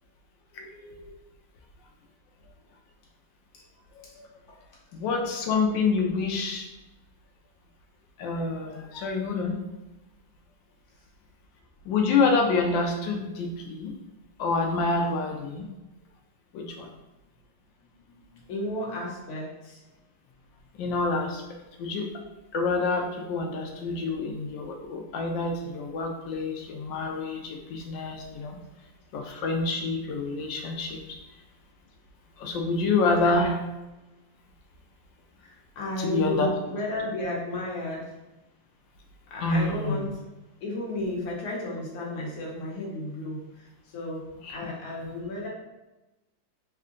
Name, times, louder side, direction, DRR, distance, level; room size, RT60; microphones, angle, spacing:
voice 1, 0.5-1.1 3.9-4.3 5.0-6.7 8.2-9.6 11.8-13.9 14.4-15.7 16.5-16.9 20.7-21.4 21.8-22.2 22.5-28.6 29.1-31.2 32.4-33.5 36.0-36.5 39.4-40.1 44.4-44.6 45.0-45.1, left 3 dB, 80° left, 2 dB, 1.3 m, -27 dB
voice 2, 18.5-19.8 33.2-33.5 35.7-38.1 39.3-40.1 40.6-44.2 44.5-45.5, left 1 dB, 60° left, -4 dB, 1.4 m, -33 dB
3.6 x 2.2 x 3.7 m, 1.0 s
omnidirectional pair, 2.0 m